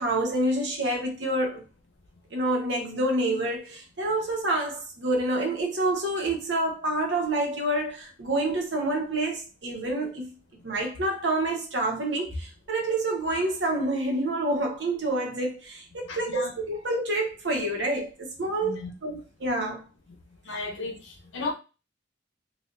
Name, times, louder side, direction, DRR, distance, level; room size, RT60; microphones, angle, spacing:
voice 1, 0.0-1.7 2.3-10.3 10.6-19.8, right 1 dB, 70° right, 1.0 m, -28 dB
voice 2, 16.1-16.6 18.6-18.9 20.4-21.5, left 3 dB, 90° left, 0.9 m, -34 dB
4.2 x 2.4 x 2.5 m
head